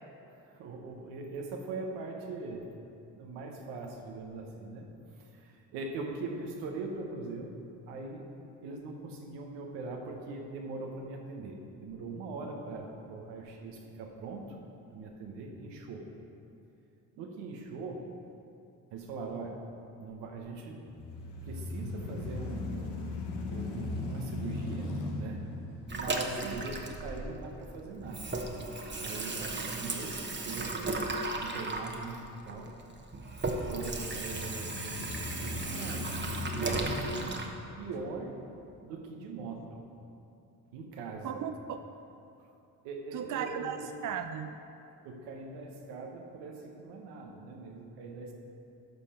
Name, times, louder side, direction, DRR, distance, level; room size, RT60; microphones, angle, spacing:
voice 1, 0.2-2.6 3.1-4.9 5.2-7.5 7.9-8.2 8.6-14.6 14.9-16.1 17.2-18.1 18.9-19.6 20.0-20.8 21.4-23.1 23.5-25.5 25.9-28.3 29.0-30.9 31.4-32.7 33.7-37.5 37.8-38.4 38.8-39.8 40.7-41.4 42.8-43.8 45.0-48.3, right 3 dB, 90° right, 1 dB, 1.2 m, -41 dB
sound 1, 20.9-29.0 29.5-29.6 34.1-38.6, left 2 dB, 75° left, 1.1 m, -39 dB
Water tap faucet / Sink (filling or washing), 25.9-27.7 28.0-37.5, right 2 dB, 25° right, 1.1 m, -36 dB
voice 2, 41.2-41.8 43.1-44.5, right 8 dB, 50° right, 8 dB, 0.5 m, -36 dB
12.0 x 5.6 x 4.3 m, 2.7 s
supercardioid pair, 55°, 41 cm